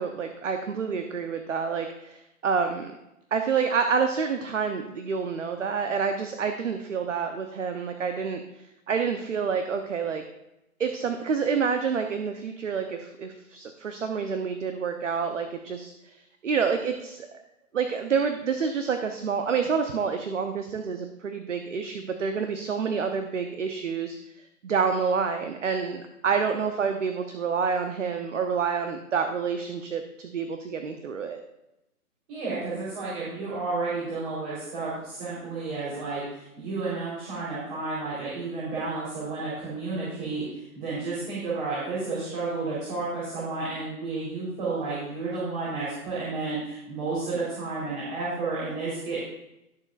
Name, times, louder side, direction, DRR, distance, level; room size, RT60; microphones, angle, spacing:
voice 1, 0.0-2.9 3.3-10.2 10.8-17.3 17.7-31.4, right 6 dB, 55° right, 6 dB, 1.0 m, -28 dB
voice 2, 32.3-49.2, right 3 dB, 35° right, -8 dB, 4.0 m, -31 dB
19.0 x 6.8 x 2.5 m, 0.90 s
figure-of-eight pair, 135°, 45 cm